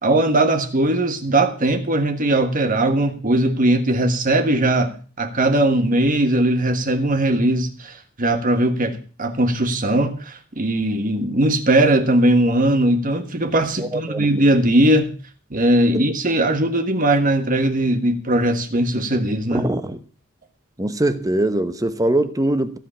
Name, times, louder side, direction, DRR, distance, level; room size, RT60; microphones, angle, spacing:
voice 1, 0.0-15.1 15.5-19.7, right 1 dB, 40° right, 1.4 m, -19 dB
voice 2, 13.8-14.3 15.9-16.0 19.5-20.0 20.8-22.8, right 1 dB, 15° right, 0.9 m, -22 dB
15.5 x 5.7 x 8.4 m
head